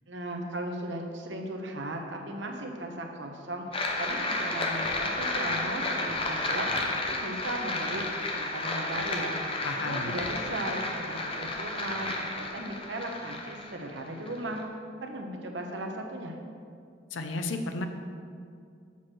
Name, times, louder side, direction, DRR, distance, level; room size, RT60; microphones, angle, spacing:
voice 1, 0.1-6.7 7.1-8.0 8.3-14.6 15.0-16.3, right 1 dB, 70° right, 3 dB, 0.9 m, -37 dB
sound 1, 3.7-14.6, left 2 dB, 30° left, 0.7 m, -32 dB
voice 2, 9.6-10.1 17.1-17.9, left 2 dB, 85° left, 7 dB, 0.6 m, -33 dB
7.1 x 4.5 x 6.1 m, 2.3 s
head